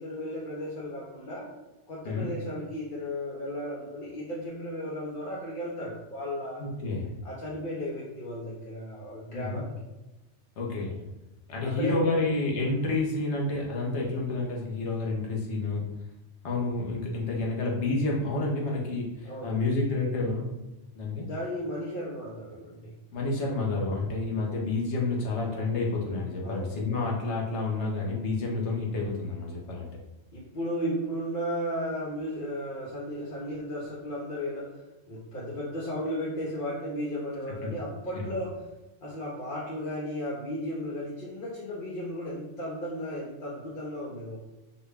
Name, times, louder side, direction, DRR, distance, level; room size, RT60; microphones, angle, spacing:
voice 1, 0.0-1.5 1.9-6.6 7.2-9.7 11.6-12.2 19.2-19.6 21.2-22.9 25.5-25.6 26.4-26.7 30.3-34.8 35.1-38.6 39.0-44.4, equal, 50° left, -6 dB, 0.8 m, -35 dB
voice 2, 6.6-7.1 9.3-9.6 10.6-10.9 11.5-15.9 16.4-20.5 20.9-21.2 23.1-29.9 37.6-37.7 38.1-38.2, left 3 dB, 80° left, -1 dB, 1.2 m, -29 dB
4.3 x 2.2 x 3.3 m, 1.0 s
omnidirectional pair, 1.2 m